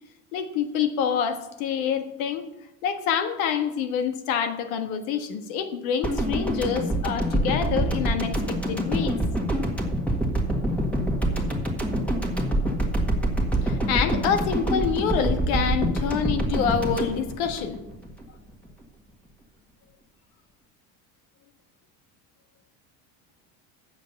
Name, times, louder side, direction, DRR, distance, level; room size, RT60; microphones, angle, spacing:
voice 1, 0.3-2.5 2.8-9.2 13.6-17.8, left 7 dB, 90° left, 7 dB, 1.5 m, -27 dB
sound 1, 6.0-18.2 18.5-18.7, right 1 dB, 5° left, 1.7 m, -26 dB
8.8 x 7.3 x 6.8 m, 0.92 s
cardioid pair, 140°, 41 cm